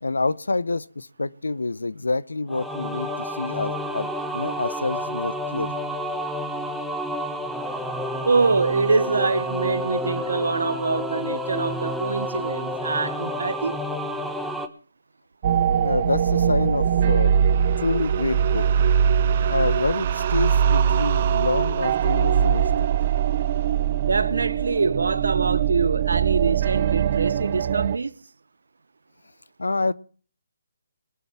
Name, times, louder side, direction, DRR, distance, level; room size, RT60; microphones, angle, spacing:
voice 1, 0.0-4.1 4.3-5.8 15.8-17.3 17.8-18.7 19.5-22.9 29.6-29.9, left 3 dB, 90° left, 0.8 m, -27 dB
sound 1, 2.5-14.7, equal, ahead, 1.0 m, -30 dB
voice 2, 8.2-13.8 24.0-28.3, right 4 dB, 75° right, 0.8 m, -24 dB
sound 2, 15.4-28.0, right 8 dB, 40° right, 0.7 m, -22 dB
21.5 x 7.3 x 5.9 m
hypercardioid pair, 150°, 0 cm